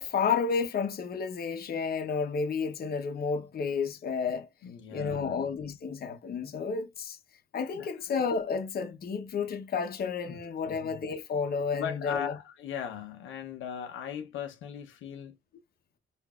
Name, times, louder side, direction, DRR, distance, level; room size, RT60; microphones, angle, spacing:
voice 1, 0.0-4.5 4.9-7.2 7.5-12.3, left 5 dB, 50° left, 0.9 m, -31 dB
voice 2, 4.6-5.5 7.7-7.9 10.3-10.4 10.7-11.0 11.7-15.3, left 8 dB, 80° left, 0.8 m, -38 dB
4.8 x 2.6 x 2.3 m
cardioid pair, 90°, 20 cm